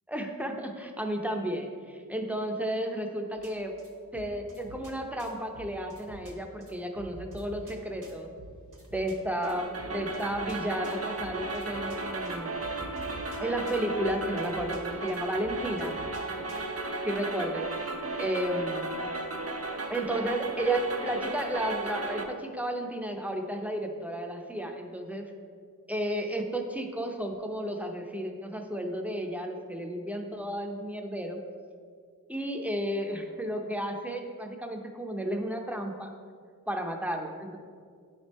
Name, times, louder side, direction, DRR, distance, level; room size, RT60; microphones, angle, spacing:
voice 1, 0.1-3.7 4.1-8.3 8.9-12.6 13.4-16.0 16.3-16.4 17.0-17.7 18.2-18.9 19.9-25.3 25.9-31.4 32.3-36.1 36.7-37.6, right 1 dB, 5° right, 3 dB, 0.7 m, -33 dB
sound 1, 3.4-16.8, right 1 dB, 60° right, 1.1 m, -49 dB
sound 2, 9.4-22.3, right 2 dB, 45° right, 0.6 m, -35 dB
9.6 x 3.5 x 4.1 m, 2.1 s
wide cardioid pair, 60°, 35 cm